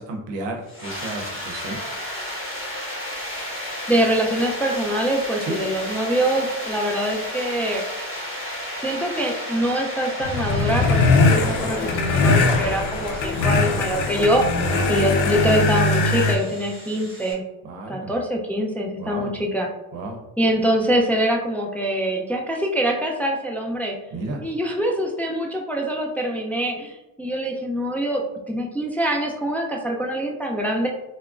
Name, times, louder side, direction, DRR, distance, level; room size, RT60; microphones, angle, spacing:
voice 1, 0.0-1.8 5.4-5.6 14.6-14.9 17.6-18.1 19.0-19.3 19.9-20.2 24.1-24.4, right 2 dB, 80° right, 2 dB, 0.7 m, -32 dB
sound 1, 0.7-17.3, left 1 dB, 30° left, 1.3 m, -34 dB
voice 2, 3.9-7.8 8.8-14.4 14.9-17.4 17.9-19.7 20.4-24.0 24.4-30.9, right 1 dB, 5° left, 0 dB, 0.3 m, -24 dB
sound 2, 10.2-16.3, left 3 dB, 90° left, 0.5 m, -20 dB
3.5 x 2.0 x 2.3 m, 0.98 s
supercardioid pair, 70°, 44 cm